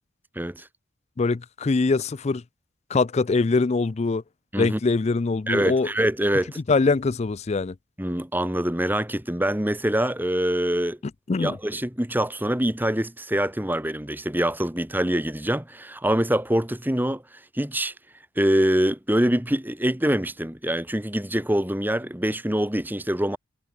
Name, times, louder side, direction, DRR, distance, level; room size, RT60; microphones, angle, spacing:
voice 1, 0.3-0.7 4.5-4.8 5.5-6.6 8.0-11.0 11.4-17.2 17.5-17.9 18.4-23.4, right 1 dB, 10° right, 1.6 m, -24 dB
voice 2, 1.2-2.4 2.9-4.2 4.6-5.9 6.7-7.7 11.3-11.6, left 3 dB, 30° left, 0.4 m, -23 dB
head